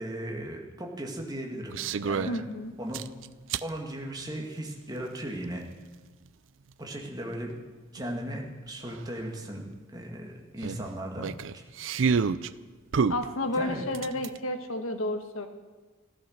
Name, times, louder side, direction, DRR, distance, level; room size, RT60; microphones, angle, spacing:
voice 1, 0.0-2.4 2.8-3.0 3.6-5.6 6.8-7.5 7.9-9.6 9.9-11.6 13.5-13.8, right 1 dB, 20° right, 1 dB, 2.0 m, -37 dB
sound 1, 1.7-2.4 2.9-3.7 5.2-5.3 8.0-8.1 8.3-8.4 8.9-9.0 10.6-12.5 12.9-14.4, right 5 dB, 70° right, 0.5 m, -28 dB
voice 2, 2.2-2.7 13.1-15.5, left 1 dB, 90° left, 7 dB, 1.4 m, -31 dB
14.5 x 13.5 x 6.5 m, 1.3 s
head